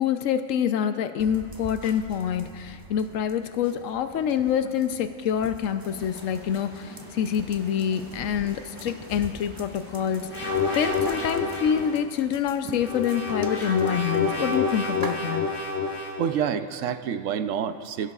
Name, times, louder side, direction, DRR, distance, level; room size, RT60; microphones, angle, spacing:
voice 1, 0.0-10.5 10.8-15.5, left 8 dB, 90° left, 8 dB, 1.0 m, -26 dB
sound 1, 1.2-15.1, right 2 dB, 25° right, 0.6 m, -45 dB
sound 2, 5.9-12.5, equal, 10° left, 2.6 m, -46 dB
sound 3, 10.3-11.9 12.7-16.3, left 4 dB, 55° left, 2.2 m, -28 dB
voice 2, 16.2-18.1, right 8 dB, 80° right, 9 dB, 1.0 m, -28 dB
25.5 x 16.5 x 2.4 m, 2.2 s
omnidirectional pair, 1.3 m